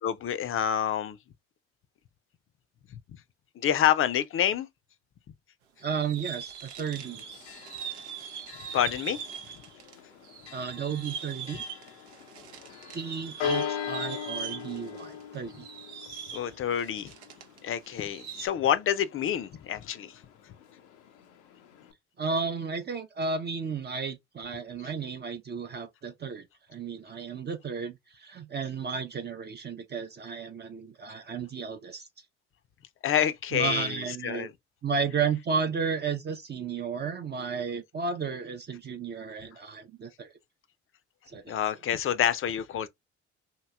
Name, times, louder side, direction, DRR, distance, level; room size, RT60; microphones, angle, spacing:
voice 1, 0.0-1.2 3.6-4.7 8.7-9.2 16.3-17.1 17.6-20.1 33.0-34.0 34.2-34.5 41.5-42.9, left 10 dB, 40° left, 0.5 m, -27 dB
voice 2, 5.8-7.2 10.5-11.6 12.9-15.7 22.2-32.1 33.5-34.5 34.8-40.3 41.3-41.6, right 5 dB, 30° right, 0.5 m, -33 dB
sound 1, 5.8-10.0 10.2-17.6 17.8-18.5, right 8 dB, 90° right, 0.6 m, -41 dB
Church bell, 6.8-21.9, left 8 dB, 85° left, 0.6 m, -41 dB
2.9 x 2.7 x 2.2 m
hypercardioid pair, 55°, 33 cm